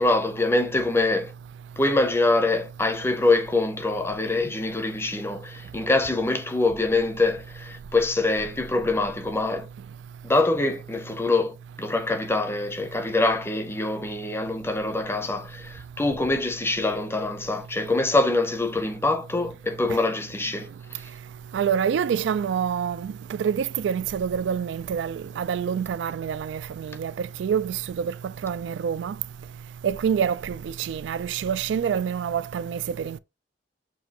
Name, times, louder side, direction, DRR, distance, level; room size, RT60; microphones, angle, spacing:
voice 1, 0.0-1.3 1.8-9.7 10.2-21.0, left 2 dB, 15° left, 0.6 m, -24 dB
voice 2, 21.5-23.1 23.4-28.1 28.4-29.1 29.8-33.2, right 7 dB, 75° right, 0.3 m, -27 dB
7.0 x 2.7 x 2.8 m
head